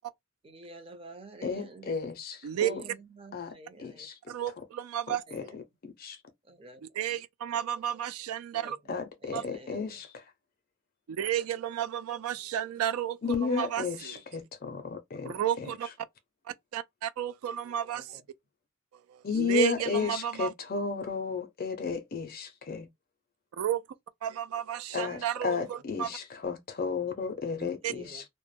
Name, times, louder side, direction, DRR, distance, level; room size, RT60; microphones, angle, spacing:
voice 1, 0.4-2.0 2.6-4.1 5.3-5.6 6.4-6.8 8.5-10.0 17.9-18.3 25.6-25.7 27.8-28.2, right 2 dB, 25° right, 0.4 m, -49 dB
voice 2, 1.4-2.8 3.3-3.5 3.8-4.2 4.6-4.7 5.1-5.4 5.8-6.2 8.9-10.3 13.2-15.7 19.2-22.9 24.9-28.3, left 5 dB, 45° left, 0.4 m, -33 dB
voice 3, 4.3-5.2 7.0-8.8 9.3-9.4 11.1-14.2 15.2-15.9 16.7-18.2 19.1-20.5 23.6-23.8 24.2-25.6 26.0-26.1 27.6-27.9, right 10 dB, 90° right, 0.3 m, -32 dB
2.1 x 2.0 x 3.0 m
head